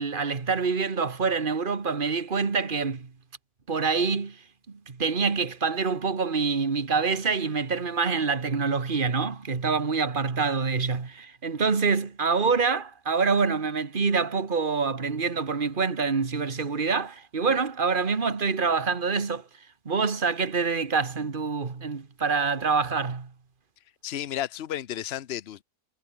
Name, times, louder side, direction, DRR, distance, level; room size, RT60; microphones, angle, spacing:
voice 1, 0.0-3.1 3.7-4.4 4.7-19.4 19.9-23.3, right 5 dB, 35° right, 1.7 m, -26 dB
voice 2, 24.0-25.6, left 11 dB, 50° left, 0.9 m, -32 dB
omnidirectional pair, 1.6 m